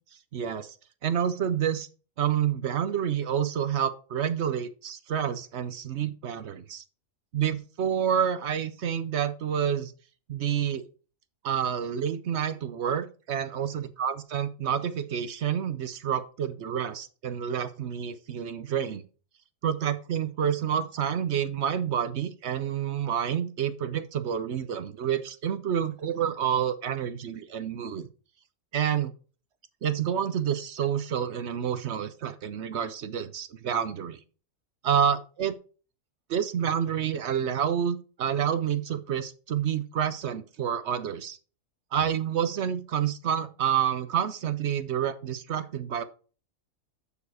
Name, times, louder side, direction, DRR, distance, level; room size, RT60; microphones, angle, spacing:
voice 1, 0.3-0.7 1.0-1.9 2.2-6.8 7.3-9.9 10.3-10.8 11.4-19.0 19.6-28.1 28.7-29.1 29.8-34.2 34.8-35.5 36.3-41.4 41.9-46.0, right 9 dB, 60° right, 13 dB, 0.9 m, -28 dB
7.0 x 6.9 x 4.8 m, 0.37 s
omnidirectional pair, 1.4 m